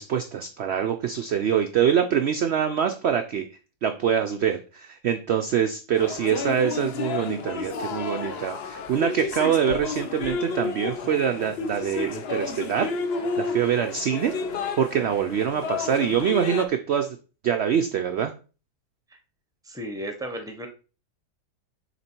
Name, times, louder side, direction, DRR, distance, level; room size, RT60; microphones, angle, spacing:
voice 1, 0.0-3.5 3.8-14.4 14.8-17.2 17.4-18.3, right 8 dB, 80° right, 7 dB, 0.6 m, -25 dB
sound 1, 6.0-16.7, left 5 dB, 60° left, 0.7 m, -31 dB
voice 2, 19.6-20.7, equal, 5° right, 5 dB, 0.5 m, -34 dB
6.9 x 3.4 x 4.5 m, 0.35 s
omnidirectional pair, 1.7 m